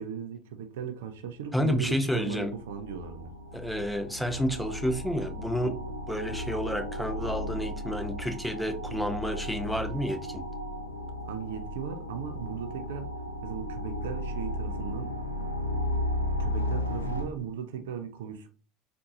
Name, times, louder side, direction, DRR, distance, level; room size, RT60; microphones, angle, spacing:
voice 1, 0.0-3.3 5.6-5.9 11.3-13.1 13.4-15.2 16.4-18.5, right 7 dB, 70° right, 0.4 m, -37 dB
voice 2, 1.5-2.5 3.5-5.8 6.1-10.4, equal, ahead, 0.6 m, -30 dB
sound 1, 1.8-1.9 2.2-17.2, left 1 dB, 90° left, 0.4 m, -35 dB
3.7 x 2.5 x 2.7 m
figure-of-eight pair, 70°, 0 cm